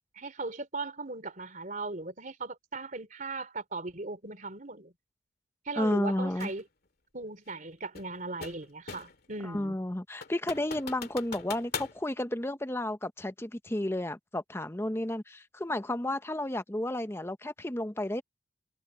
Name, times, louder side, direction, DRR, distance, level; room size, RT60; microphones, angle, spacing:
voice 1, 0.2-4.9 5.7-6.6 7.1-9.8, right 3 dB, 40° right, 3.5 m, -38 dB
voice 2, 5.8-6.5 9.4-18.2, left 1 dB, 10° left, 0.7 m, -32 dB
sound 1, 6.4-6.6 7.9-9.3 9.6-9.7 10.2-12.0, left 5 dB, 50° left, 2.3 m, -40 dB
head